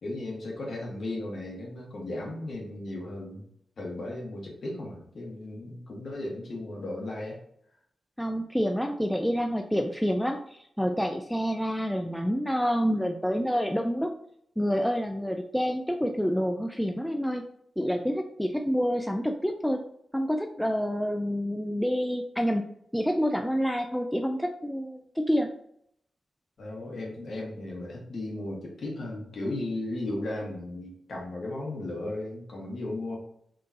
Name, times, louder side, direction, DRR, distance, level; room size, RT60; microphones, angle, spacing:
voice 1, 0.0-3.4 3.8-7.4 26.6-33.2, left 2 dB, 65° left, -2 dB, 1.6 m, -35 dB
voice 2, 8.2-14.1 14.6-17.4 17.8-19.8 20.1-22.6 22.9-25.5, equal, 5° left, 4 dB, 0.3 m, -28 dB
3.8 x 3.7 x 2.8 m, 0.71 s
wide cardioid pair, 90°, 0 cm